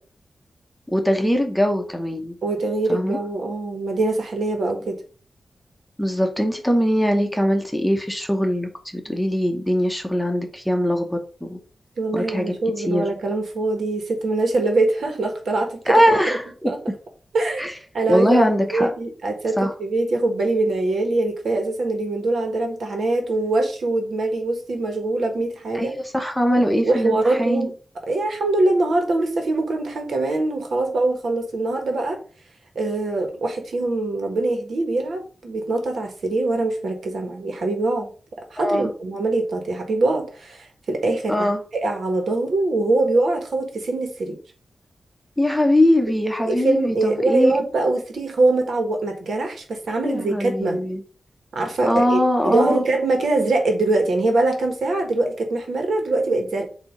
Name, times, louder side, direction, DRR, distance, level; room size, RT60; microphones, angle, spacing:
voice 1, 0.9-2.4 2.9-3.2 6.0-11.6 12.1-12.5 12.9-13.1 15.9-16.7 17.6-17.7 18.1-18.9 19.6-19.7 25.7-27.7 38.6-38.9 41.3-41.6 45.4-47.6 50.0-51.0 51.9-52.8, equal, 5° left, 4 dB, 0.8 m, -21 dB
voice 2, 2.4-5.0 12.0-16.4 16.6-16.8 17.3-17.6 17.9-25.9 26.8-27.7 28.1-32.2 32.7-38.1 38.5-41.3 41.7-44.4 46.5-50.8 51.5-52.2 52.4-56.6, right 2 dB, 75° right, 4 dB, 1.5 m, -23 dB
7.7 x 2.8 x 5.1 m, 0.40 s
wide cardioid pair, 175°, 0 cm